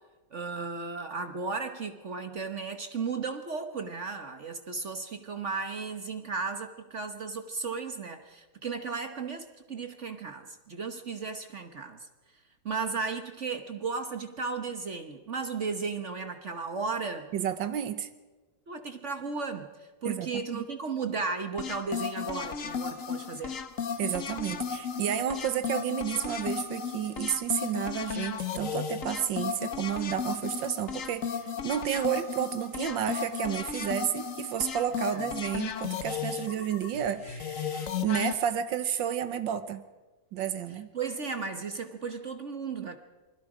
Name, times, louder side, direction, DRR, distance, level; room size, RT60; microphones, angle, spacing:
voice 1, 0.3-12.1 12.6-17.3 18.7-23.6 35.0-35.3 40.9-43.0, right 4 dB, 45° right, 7 dB, 1.3 m, -35 dB
voice 2, 17.3-18.1 20.1-20.6 24.0-31.3 31.6-39.8 40.3-40.9, right 9 dB, 90° right, 11 dB, 1.7 m, -31 dB
sound 1, 21.6-38.3, left 7 dB, 50° left, 1.4 m, -35 dB
27.5 x 21.5 x 5.0 m, 1.2 s
omnidirectional pair, 2.0 m